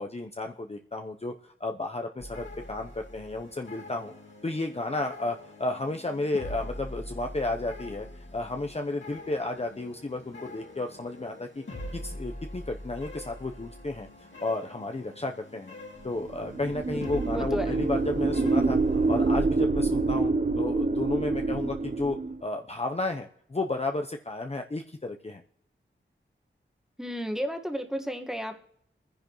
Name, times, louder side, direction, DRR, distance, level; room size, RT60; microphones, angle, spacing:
voice 1, 0.0-4.1 4.4-11.6 11.9-15.7 16.0-25.4, left 2 dB, 30° left, 4 dB, 0.8 m, -33 dB
sound 1, 2.2-19.3, left 1 dB, 65° left, 2.7 m, -43 dB
sound 2, 16.3-22.4, right 3 dB, 40° right, 0.7 m, -26 dB
voice 2, 16.9-17.7 27.0-28.6, equal, ahead, 5 dB, 1.5 m, -33 dB
24.0 x 10.0 x 3.1 m, 0.71 s
cardioid pair, 40°, 20 cm